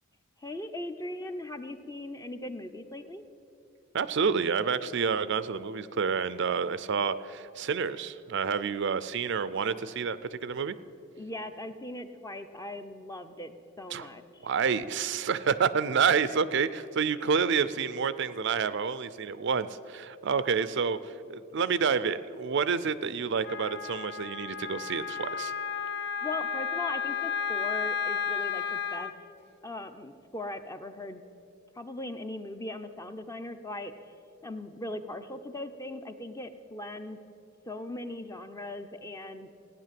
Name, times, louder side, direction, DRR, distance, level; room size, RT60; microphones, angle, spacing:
voice 1, 0.4-3.2 11.2-13.5 13.8-14.2 26.2-29.1 29.6-31.2 31.8-33.9 34.4-37.2 37.7-39.5, left 1 dB, 15° left, 8 dB, 0.7 m, -39 dB
voice 2, 3.9-10.8 13.9-14.1 14.4-25.5, right 6 dB, 60° right, 15 dB, 0.5 m, -29 dB
Wind instrument woodwind instrument, 23.4-29.1, left 7 dB, 55° left, 0.8 m, -33 dB
16.5 x 9.9 x 7.6 m, 2.6 s
head